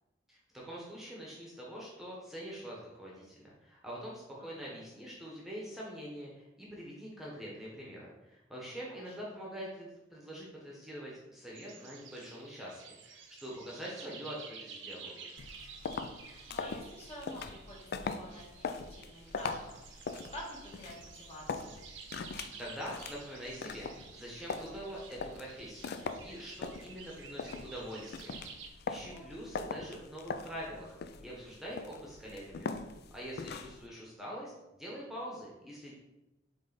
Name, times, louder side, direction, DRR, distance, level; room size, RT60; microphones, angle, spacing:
voice 1, 0.3-15.1 22.6-28.4 28.9-34.5 34.8-35.9, equal, ahead, -5 dB, 1.1 m, -44 dB
sound 1, 11.5-28.7, right 5 dB, 75° right, 0.8 m, -52 dB
sound 2, 15.4-33.9, left 4 dB, 55° left, 0.4 m, -42 dB
voice 2, 16.1-21.8 29.0-29.6, equal, 35° left, -3 dB, 1.6 m, -49 dB
7.5 x 3.3 x 4.0 m, 1.0 s
head